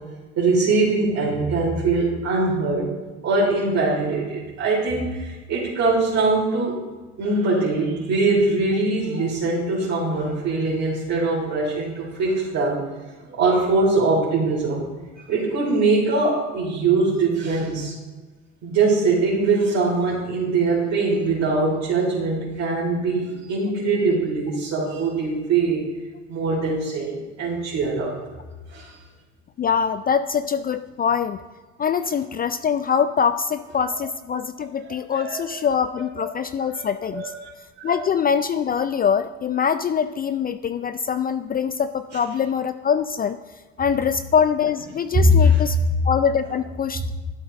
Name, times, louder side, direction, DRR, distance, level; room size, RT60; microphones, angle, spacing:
voice 1, 0.4-2.9 3.2-6.8 7.2-12.8 13.2-14.8 15.2-17.9 18.6-25.9 26.3-28.1 28.7-28.9 34.0-34.1 34.8-35.4 35.9-36.2 36.7-36.8 37.1-37.5 37.8-38.0 45.1-45.6, right 2 dB, 50° right, -6 dB, 3.4 m, -22 dB
voice 2, 29.6-31.4 31.8-37.3 37.8-43.4 43.8-45.8 46.0-47.1, left 7 dB, 25° left, 12 dB, 0.4 m, -23 dB
12.5 x 7.9 x 3.8 m, 1.3 s
hypercardioid pair, 65°, 35 cm